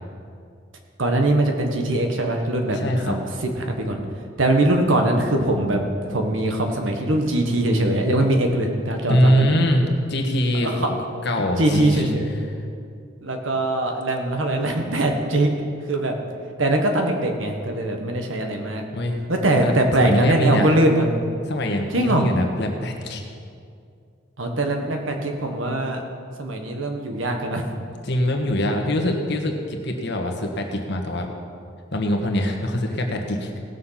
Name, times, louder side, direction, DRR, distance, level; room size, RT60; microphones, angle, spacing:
voice 1, 1.0-2.8 3.1-4.0 4.4-9.5 10.6-10.9 11.6-12.3 13.2-15.5 15.9-16.2 16.6-18.8 19.3-21.1 21.9-22.2 24.4-26.0 26.4-27.6, right 1 dB, 85° right, 3 dB, 1.5 m, -22 dB
voice 2, 2.7-3.2 9.1-10.9 11.2-12.2 18.9-19.2 19.6-20.7 21.5-23.2 28.0-31.3 31.9-33.6, equal, 60° left, 3 dB, 1.4 m, -23 dB
17.5 x 6.7 x 5.8 m, 2.3 s
head